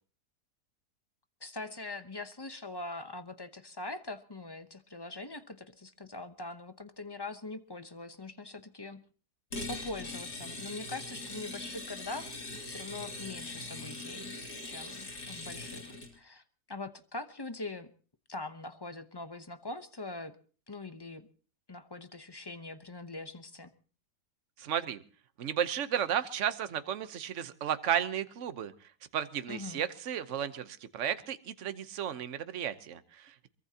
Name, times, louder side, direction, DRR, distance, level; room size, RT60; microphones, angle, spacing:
voice 1, 1.4-9.0 9.7-14.4 14.6-17.9 18.3-20.4 20.7-21.3 21.7-23.7 29.5-29.8, left 2 dB, 20° left, 10 dB, 0.6 m, -42 dB
sound 1, 9.5-16.1, left 2 dB, 80° left, 3.3 m, -41 dB
voice 2, 24.6-25.0 25.4-28.7 29.1-33.5, right 9 dB, 50° right, 11 dB, 1.2 m, -33 dB
23.0 x 22.0 x 2.9 m, 0.39 s
omnidirectional pair, 1.7 m